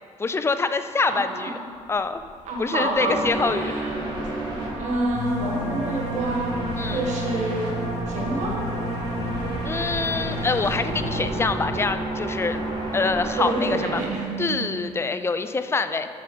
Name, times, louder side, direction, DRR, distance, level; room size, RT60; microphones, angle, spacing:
voice 1, 0.2-1.6 1.9-2.2 2.6-3.7 6.8-7.1 9.6-12.6 12.9-14.0 14.4-16.1, left 4 dB, 20° left, 10 dB, 0.4 m, -25 dB
voice 2, 1.1-1.6 2.4-4.2 4.8-6.5 6.9-7.7 8.1-8.6 13.4-14.3, right 2 dB, 70° right, -1 dB, 1.5 m, -28 dB
sound 1, 2.1-2.6 2.9-3.0 3.2-13.9, equal, 65° left, 1.1 m, -33 dB
sound 2, 3.0-14.6, right 2 dB, 40° right, 2.1 m, -31 dB
7.5 x 4.9 x 6.0 m, 2.3 s
cardioid pair, 95°, 13 cm